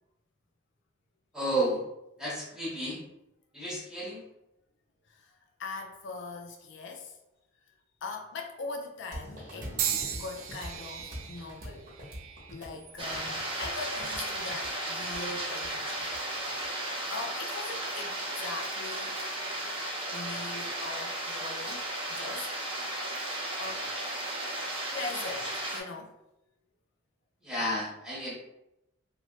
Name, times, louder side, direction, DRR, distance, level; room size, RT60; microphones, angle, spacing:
voice 1, 1.3-1.8 2.2-3.0 3.5-4.2 27.4-28.3, right 1 dB, 5° right, -6 dB, 0.9 m, -31 dB
voice 2, 5.1-7.2 8.0-9.8 10.1-12.1 12.5-16.1 16.7-19.2 20.1-22.5 23.6-23.9 24.9-26.1, left 3 dB, 60° left, 2 dB, 0.4 m, -41 dB
sound 1, 9.1-16.7, equal, 45° right, 1.0 m, -44 dB
sound 2, 9.8-13.9 14.6-15.0 16.0-16.2, right 8 dB, 90° right, 0.3 m, -37 dB
sound 3, 13.0-25.8, right 1 dB, 25° right, 0.6 m, -35 dB
3.0 x 2.3 x 3.0 m, 0.87 s
head